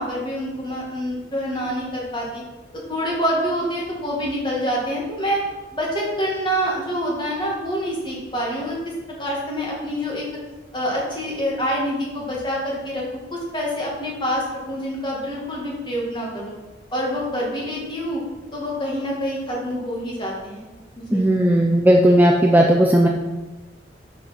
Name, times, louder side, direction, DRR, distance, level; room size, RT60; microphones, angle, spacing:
voice 1, 0.0-2.4 2.7-5.4 5.7-8.8 9.2-10.2 10.7-13.0 13.3-16.5 16.9-18.2 18.5-20.7 21.1-21.2, equal, 25° left, -3 dB, 1.8 m, -26 dB
voice 2, 21.1-23.1, right 1 dB, 10° right, 0 dB, 0.4 m, -15 dB
6.1 x 5.4 x 5.8 m, 1.2 s
head